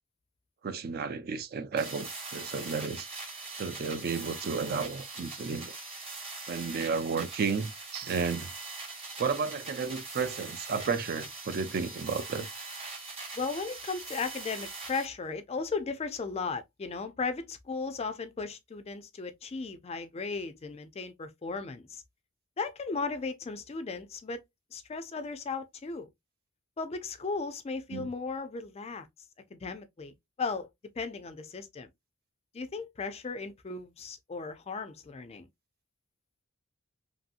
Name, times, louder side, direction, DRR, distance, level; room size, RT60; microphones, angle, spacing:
voice 1, 0.6-3.1 3.5-5.8 6.5-8.5 9.2-12.5 27.9-28.1, right 5 dB, 45° right, 0.4 m, -32 dB
sound 1, 1.8-15.1, right 3 dB, 25° right, 0.9 m, -42 dB
voice 2, 13.4-22.0 22.6-24.4 24.7-26.1 26.8-29.1 29.5-30.7 31.0-31.9 32.5-35.5, left 4 dB, 30° left, 0.4 m, -36 dB
3.0 x 2.7 x 2.4 m
head